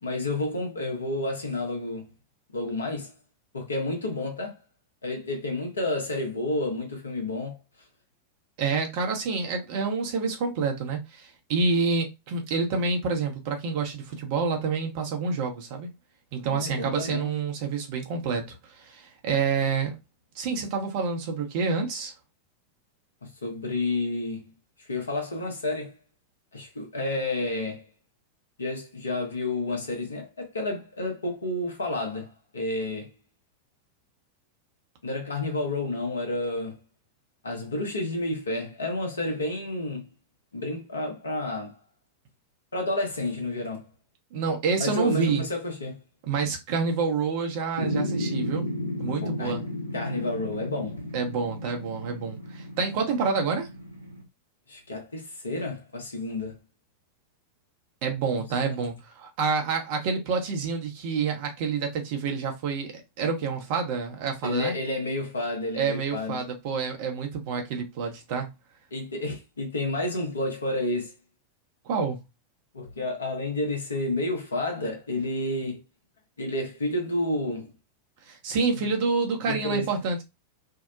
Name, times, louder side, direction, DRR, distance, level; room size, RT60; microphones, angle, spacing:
voice 1, 0.0-2.1 2.5-3.1 3.5-4.6 5.0-7.6 16.5-17.3 23.2-24.5 24.8-26.0 26.5-27.8 28.6-33.1 35.0-36.8 37.4-40.1 40.5-41.8 42.7-43.9 44.8-46.0 49.2-49.6 49.9-51.0 54.7-56.6 58.3-58.8 64.4-66.4 68.9-71.1 72.7-75.8 76.4-77.7 78.8-78.9 79.5-79.9, left 2 dB, 75° left, 0.8 m, -30 dB
voice 2, 8.6-15.9 16.3-20.0 20.3-22.1 44.3-45.4 46.3-48.7 49.0-49.6 51.1-53.7 58.0-64.7 65.8-68.5 71.8-72.2 78.3-80.2, right 5 dB, 45° right, 0.8 m, -28 dB
sound 1, 47.8-54.2, left 1 dB, 85° right, 0.6 m, -33 dB
2.7 x 2.1 x 2.5 m
figure-of-eight pair, 90°, 0 cm